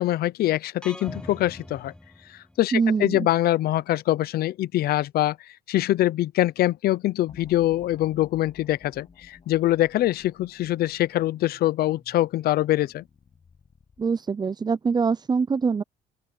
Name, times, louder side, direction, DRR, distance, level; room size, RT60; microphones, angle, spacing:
voice 1, 0.0-1.9 2.3-13.0, left 14 dB, 65° left, 0.8 m, -24 dB
sound 1, 0.8-2.8, left 1 dB, 5° left, 1.2 m, -42 dB
voice 2, 2.7-3.3 14.0-15.8, right 5 dB, 25° right, 0.6 m, -24 dB
sound 2, 7.3-14.2, left 6 dB, 35° left, 6.4 m, -54 dB
open air
cardioid pair, 110°, 17 cm